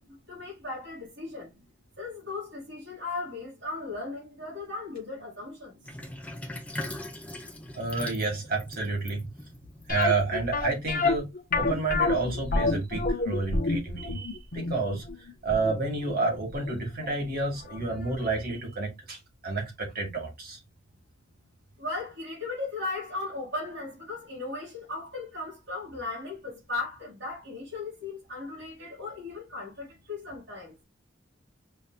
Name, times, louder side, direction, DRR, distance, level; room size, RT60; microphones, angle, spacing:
voice 1, 0.0-1.5 2.0-5.8 21.8-30.7, left 3 dB, 70° right, 2.8 m, -37 dB
Sink (filling or washing), 5.8-10.6, left 1 dB, 5° left, 0.6 m, -40 dB
voice 2, 7.7-9.3 9.9-11.3 11.5-20.6, right 3 dB, 50° right, 1.9 m, -30 dB
sound 1, 9.9-16.8 17.0-17.1 17.7-17.8 18.1-18.2, left 3 dB, 45° left, 0.6 m, -28 dB
5.2 x 2.8 x 2.4 m
head